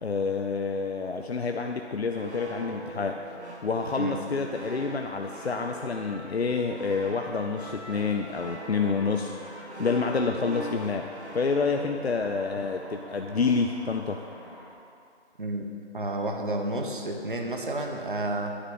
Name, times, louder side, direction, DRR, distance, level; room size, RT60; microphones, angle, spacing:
voice 1, 0.0-3.2 3.6-9.4 9.8-14.2, left 4 dB, 65° left, 4 dB, 0.6 m, -28 dB
sound 1, 2.1-13.1, right 1 dB, 75° right, 1.8 m, -43 dB
Trumpet, 5.2-11.9, equal, 40° left, 2.0 m, -47 dB
sound 2, 8.7-14.7, equal, 20° left, 0.9 m, -49 dB
voice 2, 15.9-18.6, right 1 dB, 50° right, 3 dB, 1.2 m, -30 dB
9.8 x 6.0 x 6.4 m, 2.4 s
figure-of-eight pair, 175°, 34 cm